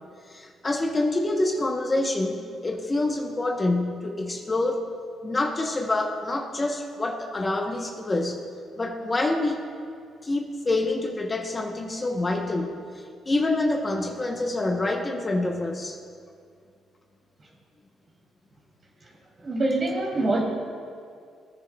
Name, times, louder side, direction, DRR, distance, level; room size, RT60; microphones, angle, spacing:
voice 1, 0.3-4.9 5.2-8.4 8.8-9.6 10.2-12.7 13.3-16.0, left 2 dB, 25° left, 3 dB, 0.8 m, -26 dB
voice 2, 19.4-20.4, right 2 dB, 40° right, -1 dB, 2.4 m, -24 dB
18.5 x 10.0 x 2.2 m, 2.2 s
cardioid pair, 90°, 0 cm